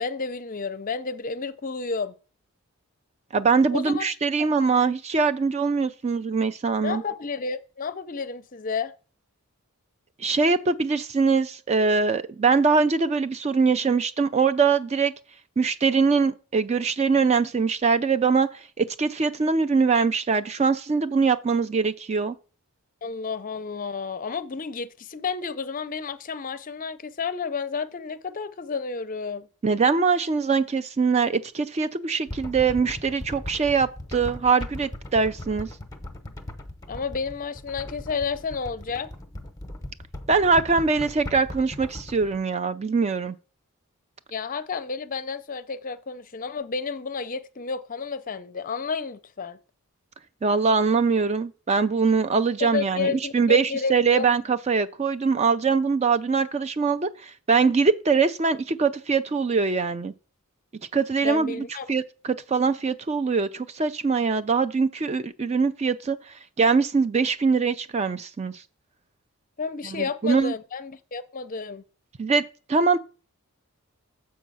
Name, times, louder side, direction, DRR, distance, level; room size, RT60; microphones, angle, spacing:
voice 1, 0.0-2.1 3.7-4.0 4.4-4.5 6.8-8.9 23.0-29.5 36.9-39.1 44.3-49.6 52.6-54.3 61.2-61.9 69.6-71.8, left 5 dB, 40° left, 0.5 m, -31 dB
voice 2, 3.3-7.0 10.2-15.1 15.6-18.5 18.8-22.4 29.6-35.7 40.3-43.4 50.4-60.1 60.9-66.2 66.6-68.5 69.8-70.5 72.2-72.4 72.7-73.0, right 5 dB, 30° right, 0.4 m, -22 dB
sound 1, 32.3-42.4, left 1 dB, 15° left, 0.9 m, -38 dB
7.3 x 4.7 x 5.4 m
head